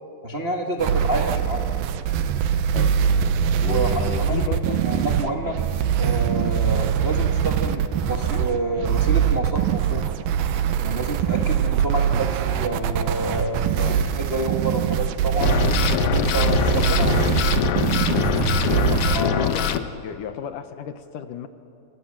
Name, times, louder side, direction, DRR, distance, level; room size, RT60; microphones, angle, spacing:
voice 1, 0.2-1.7 3.6-5.6 6.0-10.1 10.8-15.5 16.0-17.3 19.1-19.6, right 2 dB, 55° right, 1 dB, 0.6 m, -28 dB
sound 1, 0.8-19.2, right 8 dB, 85° right, 2.8 m, -22 dB
voice 2, 3.6-4.9 5.4-5.5 11.4-11.5 13.8-14.0 18.7-18.9 19.2-21.5, left 9 dB, 70° left, 9 dB, 2.4 m, -33 dB
sound 2, 15.4-19.8, left 9 dB, 85° left, 1.3 m, -23 dB
29.5 x 24.5 x 7.5 m, 2.8 s
omnidirectional pair, 4.1 m